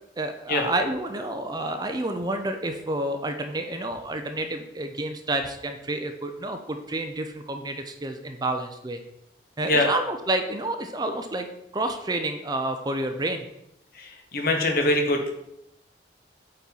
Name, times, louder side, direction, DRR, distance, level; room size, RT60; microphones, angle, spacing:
voice 1, 0.2-9.0 9.6-11.5 11.7-13.5, right 1 dB, 20° right, 6 dB, 0.5 m, -29 dB
voice 2, 13.9-15.3, left 2 dB, 55° left, 3 dB, 1.2 m, -23 dB
8.3 x 4.3 x 4.0 m, 0.81 s
head